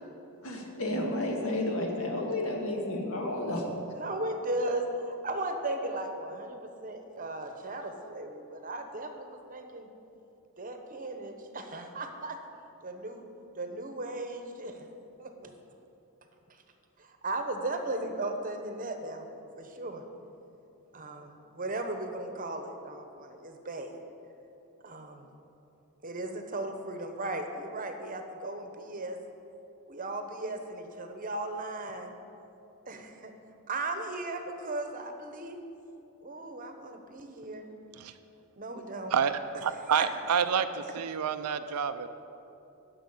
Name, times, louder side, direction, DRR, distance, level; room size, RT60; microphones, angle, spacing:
voice 1, 0.4-3.6, left 1 dB, 65° left, 1.7 m, -31 dB
voice 2, 4.0-9.9 10.6-12.4 12.8-13.2 13.5-14.9 15.2-15.5 16.5-16.6 17.0-19.3 19.5-20.0 20.9-24.0 24.8-25.3 26.0-29.2 29.9-32.1 32.9-33.3 33.7-35.6 36.2-37.7 38.6-39.2 39.5-39.6 39.9-40.1, right 2 dB, 40° right, 0.9 m, -36 dB
voice 3, 39.1-42.1, right 7 dB, 85° right, 0.5 m, -28 dB
10.5 x 6.3 x 8.3 m
head